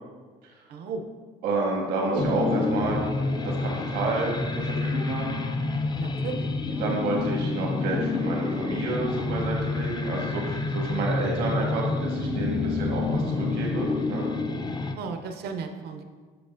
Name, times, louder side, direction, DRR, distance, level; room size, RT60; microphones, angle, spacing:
voice 1, 0.7-1.0 2.1-2.2 6.0-6.9 15.0-16.0, right 4 dB, 70° right, 5 dB, 0.6 m, -34 dB
voice 2, 1.4-5.4 6.8-14.3, right 2 dB, 85° right, -2 dB, 1.4 m, -29 dB
sound 1, 2.2-15.0, left 3 dB, 25° left, 0.4 m, -28 dB
7.8 x 5.0 x 2.5 m, 1.5 s
cardioid pair, 110°, 17 cm